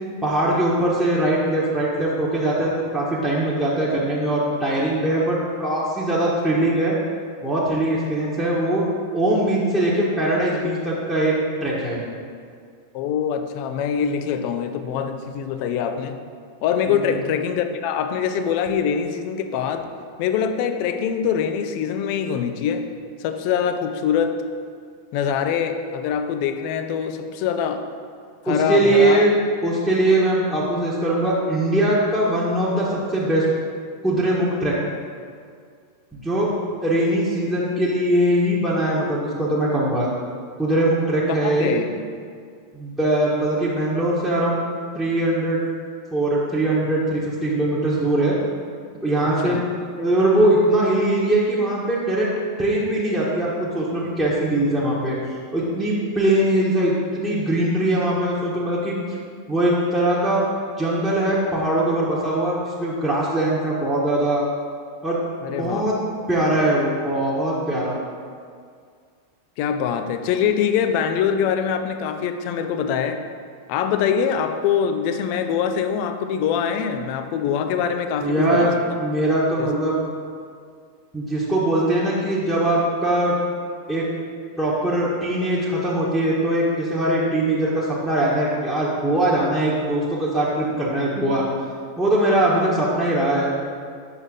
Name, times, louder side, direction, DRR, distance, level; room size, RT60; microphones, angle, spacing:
voice 1, 0.2-7.0 7.4-8.8 9.1-11.3 11.6-12.0 16.9-17.2 28.5-29.3 29.6-33.5 34.0-34.8 36.1-36.5 36.8-40.1 40.6-41.7 42.7-44.6 44.9-45.6 46.1-48.4 49.0-49.6 50.0-52.3 52.6-55.2 55.5-59.0 59.5-60.4 60.8-64.4 65.0-65.2 65.6-66.0 66.3-68.0 78.2-78.7 79.0-80.0 81.1-83.4 83.9-84.0 84.6-91.4 92.0-93.5, right 1 dB, ahead, -9 dB, 1.3 m, -21 dB
voice 2, 12.9-16.2 16.6-19.9 20.2-22.8 23.2-24.4 25.1-27.9 28.4-29.2 41.3-42.0 49.4-49.6 65.4-65.8 69.6-73.3 73.7-78.8 79.6-79.7, left 7 dB, 45° left, 7 dB, 0.6 m, -24 dB
7.8 x 6.3 x 3.8 m, 2.1 s
figure-of-eight pair, 90°, 0 cm